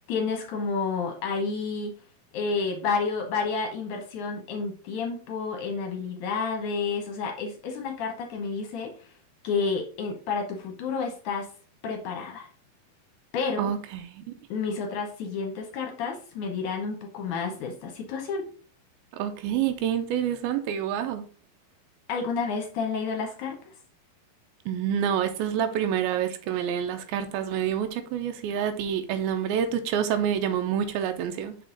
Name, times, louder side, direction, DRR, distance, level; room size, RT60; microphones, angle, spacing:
voice 1, 0.1-1.9 2.3-9.1 9.4-11.5 11.8-12.5 13.3-13.7 14.5-18.5 22.1-23.6, left 5 dB, 70° left, 2.1 m, -30 dB
voice 2, 13.6-14.2 19.1-21.3 24.7-31.6, right 9 dB, 85° right, 2.5 m, -27 dB
6.3 x 4.6 x 3.8 m
omnidirectional pair, 4.2 m